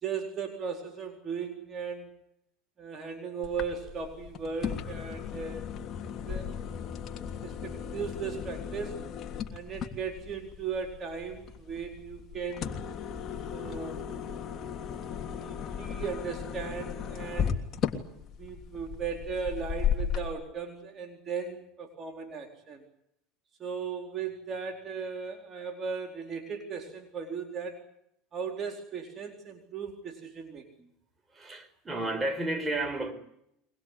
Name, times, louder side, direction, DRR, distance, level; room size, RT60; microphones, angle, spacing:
voice 1, 0.0-2.1 2.8-5.7 6.0-6.7 7.0-7.2 7.4-9.0 9.5-12.8 13.5-14.5 15.4-17.6 18.4-22.8 23.6-27.9 28.3-30.9, right 6 dB, 35° right, 4 dB, 4.3 m, -37 dB
sound 1, 3.4-20.3, left 8 dB, 40° left, 3.1 m, -36 dB
voice 2, 31.3-33.1, right 2 dB, 15° right, 8 dB, 5.0 m, -32 dB
23.5 x 20.5 x 9.7 m, 0.76 s
hypercardioid pair, 95°, 0 cm